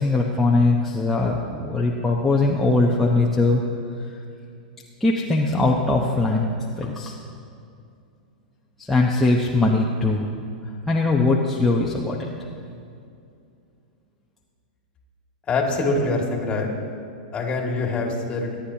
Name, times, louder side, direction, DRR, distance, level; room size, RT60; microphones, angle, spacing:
voice 1, 0.0-3.6 5.0-6.5 6.8-7.2 8.8-10.3 10.9-12.3, left 2 dB, 5° left, -3 dB, 0.9 m, -21 dB
voice 2, 15.5-16.7 17.3-18.6, left 3 dB, 25° left, 1 dB, 2.2 m, -24 dB
24.5 x 10.0 x 2.9 m, 2.5 s
hypercardioid pair, 125°, 5 cm